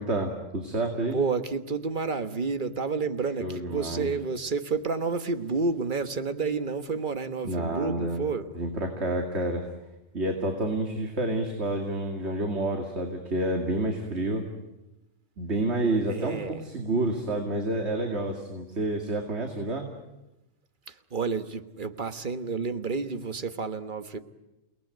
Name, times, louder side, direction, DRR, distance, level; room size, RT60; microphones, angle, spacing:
voice 1, 0.0-1.2 3.4-4.1 7.4-8.2 8.6-9.6 10.1-14.4 15.4-19.9, right 2 dB, 55° right, 3 dB, 2.7 m, -29 dB
voice 2, 1.1-8.5 16.1-16.6 20.9-24.2, right 4 dB, 40° right, 10 dB, 1.4 m, -30 dB
29.5 x 19.0 x 9.3 m, 0.98 s
omnidirectional pair, 1.4 m